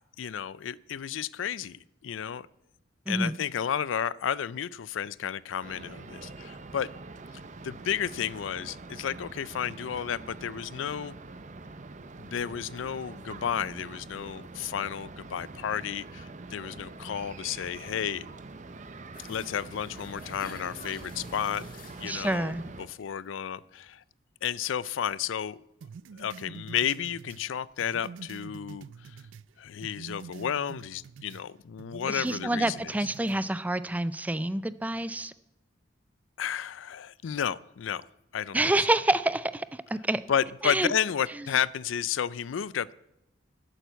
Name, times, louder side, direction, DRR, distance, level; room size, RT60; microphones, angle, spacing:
voice 1, 0.2-2.5 3.1-6.9 7.6-11.2 12.3-18.3 19.3-21.6 22.0-24.0 24.4-25.6 26.2-29.2 29.6-32.9 36.4-38.0 38.3-38.6 40.3-42.9, left 8 dB, 85° left, 20 dB, 0.4 m, -32 dB
voice 2, 3.1-3.4 22.0-22.6 32.1-35.3 38.5-40.2 40.6-40.9, right 1 dB, 10° right, 15 dB, 0.3 m, -27 dB
sound 1, 5.6-22.9, right 3 dB, 40° right, 0.7 m, -44 dB
sound 2, 19.1-22.7 23.0-23.3 23.6-23.7, left 4 dB, 45° left, 1.7 m, -50 dB
sound 3, 25.8-29.5 29.8-31.5 31.8-33.4, right 5 dB, 80° right, 0.4 m, -46 dB
11.5 x 9.1 x 8.0 m, 0.90 s
head